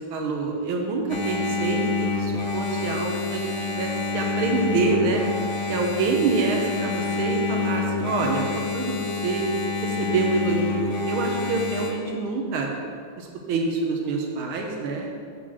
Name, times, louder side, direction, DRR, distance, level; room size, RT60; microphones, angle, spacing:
voice 1, 0.0-5.2 5.7-9.4 9.8-12.7 13.2-15.1, right 4 dB, 70° right, 1 dB, 1.8 m, -26 dB
Engine, 1.1-11.9, left 4 dB, 75° left, 0.6 m, -27 dB
7.9 x 3.8 x 6.0 m, 2.2 s
omnidirectional pair, 2.4 m